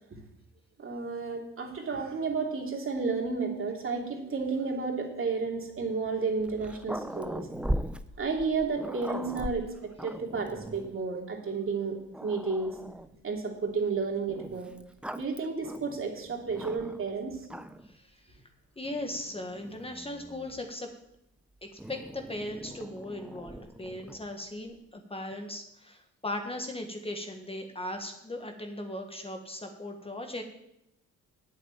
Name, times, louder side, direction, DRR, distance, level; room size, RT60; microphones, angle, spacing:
voice 1, 0.8-7.5 8.2-12.7 13.2-14.7 15.1-17.4, right 4 dB, 45° right, 0 dB, 2.9 m, -32 dB
Growling, 6.4-11.0 11.7-11.8 12.1-13.2 14.3-17.1 17.4-18.0 18.8-20.7 21.8-24.3, right 1 dB, 5° right, 0.6 m, -40 dB
voice 2, 17.9-18.4 18.8-20.9 21.6-30.4, left 1 dB, 20° left, 4 dB, 1.5 m, -38 dB
8.7 x 7.3 x 8.9 m, 0.83 s
cardioid pair, 90°, 30 cm